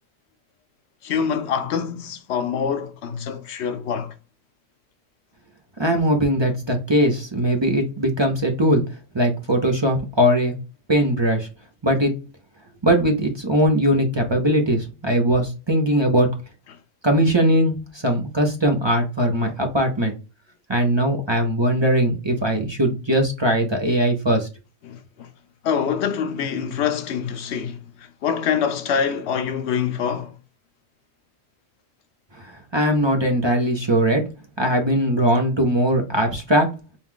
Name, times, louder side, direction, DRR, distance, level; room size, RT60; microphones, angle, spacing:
voice 1, 1.0-4.1 16.7-16.8 24.8-25.3 25.6-30.4, left 7 dB, 75° left, 0.9 m, -25 dB
voice 2, 5.8-8.8 9.1-10.6 10.9-11.5 11.8-12.1 12.8-16.3 17.0-20.2 20.7-24.5 32.3-34.3 34.6-36.7, equal, 25° right, 0.7 m, -20 dB
4.5 x 2.3 x 3.6 m
omnidirectional pair, 1.2 m